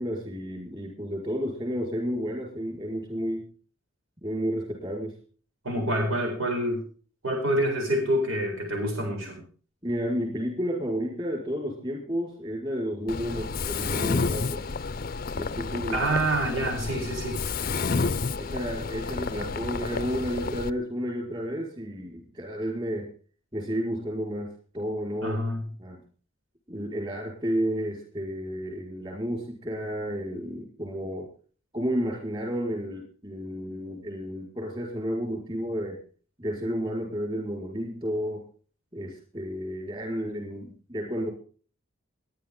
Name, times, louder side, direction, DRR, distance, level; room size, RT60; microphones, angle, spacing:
voice 1, 0.0-3.5 4.2-5.2 9.8-14.6 15.3-16.0 18.4-23.1 23.5-24.5 24.7-25.4 25.8-26.0 26.7-31.3 31.7-36.0 36.4-38.4 38.9-41.3, equal, 25° right, 0 dB, 5.2 m, -31 dB
voice 2, 5.6-6.8 7.2-9.4 15.9-17.4 25.2-25.6, right 1 dB, 90° right, 1 dB, 7.8 m, -27 dB
Mechanisms, 13.1-20.7, left 4 dB, 45° left, 0.6 m, -30 dB
22.5 x 10.5 x 3.9 m, 0.42 s
head